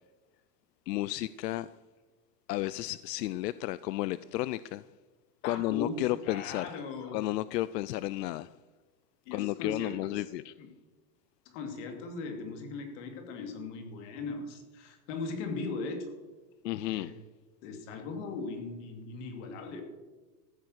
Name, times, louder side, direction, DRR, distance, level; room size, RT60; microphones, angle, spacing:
voice 1, 0.9-1.7 2.5-4.8 5.4-6.7 7.1-8.5 9.3-10.5 16.6-17.1, left 16 dB, 85° left, 0.6 m, -32 dB
voice 2, 5.4-7.2 9.3-10.2 10.6-10.7 11.4-16.1 16.9-17.1 17.6-19.8, left 4 dB, 45° left, 2.7 m, -39 dB
14.0 x 8.4 x 6.4 m
supercardioid pair, 160°, 48 cm